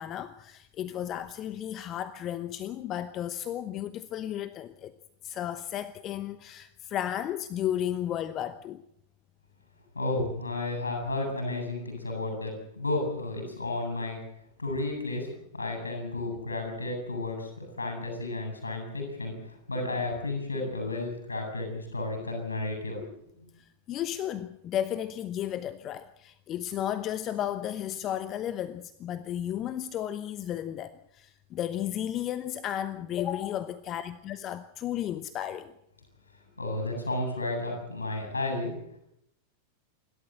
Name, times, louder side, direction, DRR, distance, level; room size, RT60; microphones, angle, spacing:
voice 1, 0.0-4.9 5.2-8.8 23.6-35.7, left 11 dB, 30° left, 0.9 m, -34 dB
voice 2, 9.9-14.2 14.6-23.0 23.4-23.5 36.6-38.7, left 2 dB, 80° left, 7.9 m, -32 dB
28.5 x 12.5 x 7.8 m
figure-of-eight pair, 90°, 0 cm